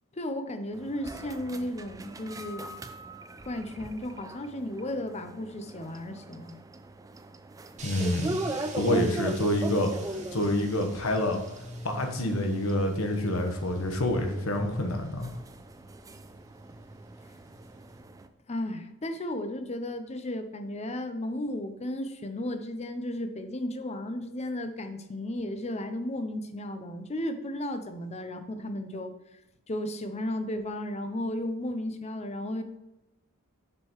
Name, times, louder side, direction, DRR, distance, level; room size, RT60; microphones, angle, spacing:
voice 1, 0.1-2.7 3.4-6.6 18.5-29.1 29.7-32.6, left 1 dB, 30° left, 8 dB, 0.6 m, -34 dB
sound 1, 0.7-18.3, right 2 dB, 15° right, 0.4 m, -40 dB
voice 2, 7.8-8.4 8.8-11.4 11.8-15.3, left 1 dB, 80° left, 4 dB, 1.2 m, -27 dB
sound 2, 7.8-18.0, right 2 dB, 35° right, 1.6 m, -45 dB
7.4 x 6.6 x 3.1 m, 0.97 s
head